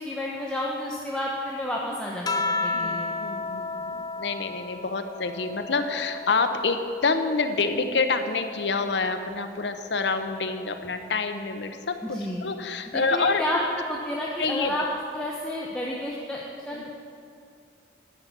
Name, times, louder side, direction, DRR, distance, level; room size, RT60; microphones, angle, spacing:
voice 1, 0.0-3.1 12.0-12.4 12.9-14.8 15.1-16.9, left 1 dB, 5° left, -4 dB, 0.9 m, -31 dB
sound 1, 2.2-7.0 7.5-9.2 10.4-10.9, left 3 dB, 20° left, 0.5 m, -33 dB
voice 2, 2.7-13.4 14.4-14.7 16.7-16.9, left 4 dB, 80° left, 8 dB, 0.8 m, -27 dB
11.0 x 6.0 x 8.3 m, 2.4 s
head